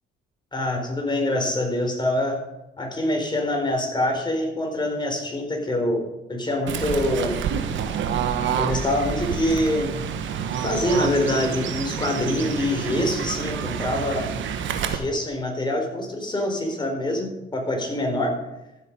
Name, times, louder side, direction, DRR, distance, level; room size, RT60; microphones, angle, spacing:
voice 1, 0.5-2.4 2.8-6.0 6.3-7.4 8.6-10.1 10.5-14.3 14.9-18.4, left 1 dB, 20° left, 2 dB, 4.0 m, -25 dB
Fowl / Bird, 6.7-15.0, right 7 dB, 75° right, 1.3 m, -28 dB
14.5 x 7.9 x 5.3 m, 0.97 s
cardioid pair, 90°, 20 cm